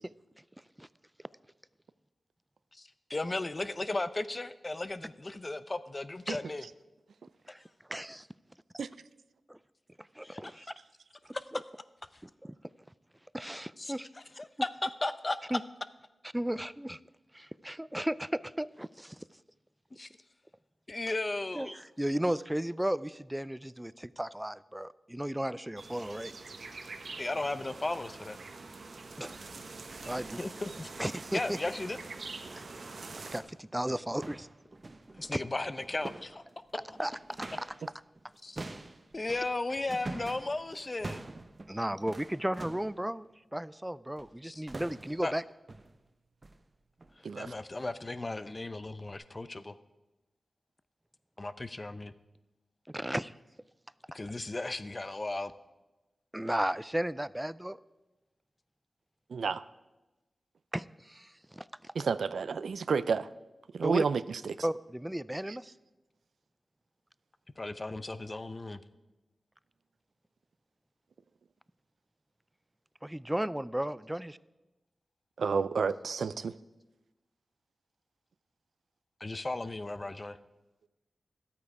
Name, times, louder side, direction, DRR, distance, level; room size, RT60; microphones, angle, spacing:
voice 1, 2.7-6.7 10.2-10.7 11.3-11.4 13.8-13.9 14.4-15.4 20.0-20.1 20.9-21.7 27.2-28.4 30.4-30.9 31.3-32.0 35.2-36.4 36.9-37.0 38.4-38.6 39.1-41.3 44.4-44.6 45.2-45.3 47.3-49.8 51.4-52.1 54.1-55.5 67.6-68.8 79.2-80.4, left 2 dB, 35° left, 13 dB, 0.6 m, -35 dB
voice 2, 7.9-8.3 10.2-10.6 11.5-11.6 12.2-12.5 13.3-14.1 15.5-15.6 16.3-17.0 17.3-19.2 21.5-26.3 29.2-29.4 30.0-30.4 31.0-31.6 32.6-32.7 33.3-34.5 35.3-35.4 37.0-37.1 37.6-37.7 41.7-43.3 43.5-45.4 52.9-53.3 56.3-57.8 60.7-61.9 63.8-64.0 64.6-65.7 73.0-74.4, right 1 dB, 10° right, 18 dB, 0.3 m, -34 dB
sound 1, 25.8-33.4, right 3 dB, 70° right, 1.0 m, -45 dB
sound 2, 33.0-33.1 33.7-37.9 38.1-43.0 44.2-44.4 44.7-45.3 45.7-46.0 46.4-46.6 47.0-47.2 47.7-47.9 48.4-48.5 49.1-49.2, right 2 dB, 40° right, 0.7 m, -45 dB
voice 3, 59.3-59.6 62.0-63.3 63.7-64.6 75.4-76.5, right 5 dB, 85° right, 15 dB, 0.3 m, -30 dB
12.5 x 8.5 x 4.8 m, 1.1 s
cardioid pair, 60°, 0 cm